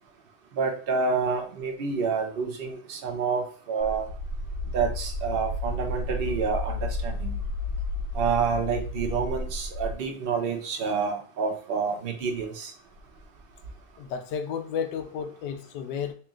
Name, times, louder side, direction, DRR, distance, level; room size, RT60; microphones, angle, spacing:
voice 1, 0.5-4.1 4.7-7.4 8.1-12.7, right 5 dB, 50° right, 2 dB, 0.6 m, -28 dB
sound 1, 3.8-9.9, left 1 dB, 60° left, 1.3 m, -32 dB
voice 2, 14.0-16.1, left 7 dB, 80° left, 7 dB, 1.2 m, -32 dB
3.2 x 3.0 x 3.6 m, 0.43 s
omnidirectional pair, 1.9 m